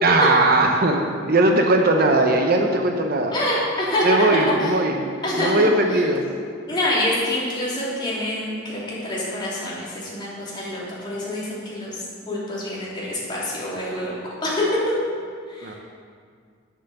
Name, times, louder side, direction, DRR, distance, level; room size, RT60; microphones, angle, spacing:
voice 1, 0.0-3.3 4.0-4.9 5.4-6.2 15.6-15.7, right 2 dB, 50° right, 3 dB, 0.8 m, -19 dB
voice 2, 3.3-4.1 4.3-6.1 6.7-14.1 14.4-14.8 15.5-15.8, left 1 dB, 25° left, -8 dB, 3.3 m, -26 dB
9.5 x 7.1 x 6.8 m, 2.1 s
head